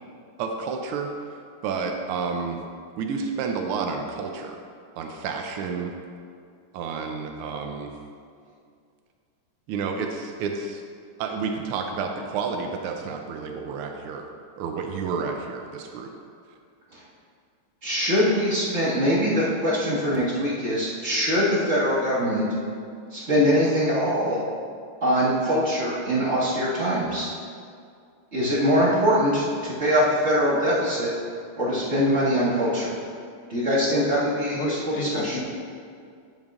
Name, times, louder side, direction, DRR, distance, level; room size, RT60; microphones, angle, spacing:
voice 1, 0.4-1.1 1.6-2.6 3.0-4.6 5.0-5.9 6.7-7.9 9.7-10.8 11.2-14.2 14.6-16.1, right 5 dB, 90° right, 3 dB, 1.5 m, -30 dB
voice 2, 17.8-22.5 23.1-24.4 25.0-27.3 28.3-31.1 31.6-32.9 33.5-35.4, equal, 35° right, -9 dB, 2.1 m, -23 dB
voice 3, 34.5-35.4, left 3 dB, 85° left, 2 dB, 1.8 m, -31 dB
10.5 x 8.3 x 2.5 m, 2.3 s
omnidirectional pair, 2.4 m